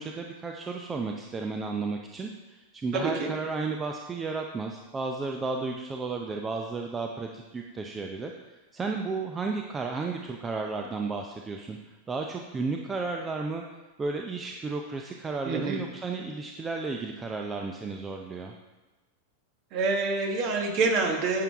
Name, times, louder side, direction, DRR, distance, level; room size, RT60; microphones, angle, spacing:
voice 1, 0.0-8.3 8.7-11.8 12.1-13.6 14.0-18.5, right 4 dB, 20° right, 2 dB, 0.6 m, -33 dB
voice 2, 2.9-3.3 15.4-15.8 19.7-21.4, right 3 dB, 40° right, 3 dB, 1.4 m, -27 dB
10.5 x 6.8 x 3.5 m, 1.1 s
figure-of-eight pair, 90°, 0 cm